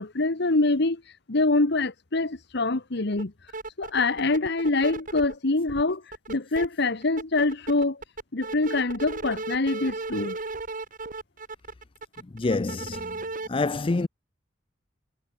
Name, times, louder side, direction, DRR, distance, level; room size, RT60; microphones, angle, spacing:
voice 1, 0.0-3.3 3.8-8.0 8.3-10.4, left 2 dB, 65° left, 1.3 m, -25 dB
sound 1, 3.1-3.2 3.5-5.3 5.7-6.7 7.0-13.5, right 3 dB, 45° right, 3.6 m, -35 dB
voice 2, 12.3-13.2 13.5-14.1, left 3 dB, 30° left, 0.5 m, -26 dB
head